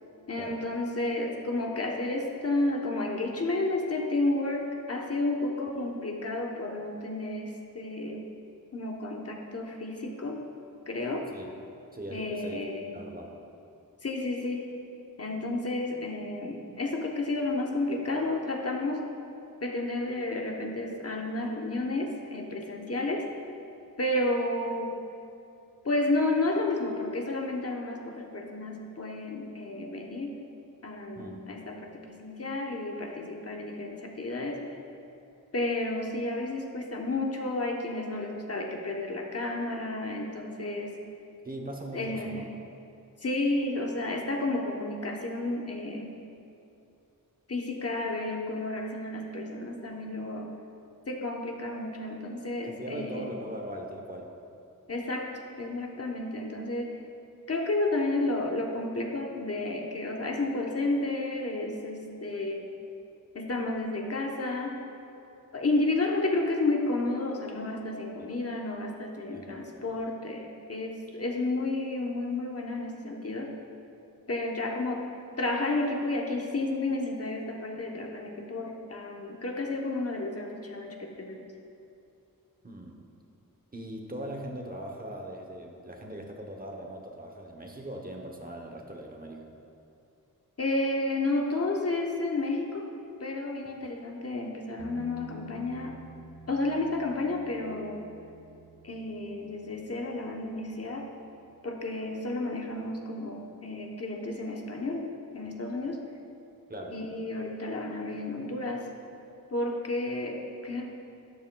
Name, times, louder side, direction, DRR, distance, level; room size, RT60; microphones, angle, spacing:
voice 1, 0.3-8.2 8.7-10.4 10.9-11.3 12.1-13.0 14.0-14.7 15.2-19.0 19.6-23.2 24.0-24.9 25.8-30.3 30.8-34.6 35.5-41.0 41.9-42.5 43.2-46.2 47.5-50.5 51.1-53.4 54.9-55.3 55.6-57.0 57.5-62.7 63.3-64.8 65.5-73.5 74.3-75.0 75.4-81.4 90.6-92.9 93.2-96.0 96.5-98.1 98.8-101.1 101.6-106.0 106.9-108.9 109.5-110.9, left 2 dB, 45° left, 1 dB, 0.9 m, -31 dB
voice 2, 11.9-12.6 12.9-13.3 31.1-31.4 41.4-42.5 52.6-54.3 69.3-69.8 82.6-83.1 83.7-89.5 106.7-107.0, right 1 dB, 25° right, 1 dB, 0.9 m, -40 dB
sound 1, 94.8-102.4 105.4-105.5, right 3 dB, 50° right, 1.3 m, -51 dB
12.5 x 10.0 x 2.3 m, 2.6 s
wide cardioid pair, 125°, 35 cm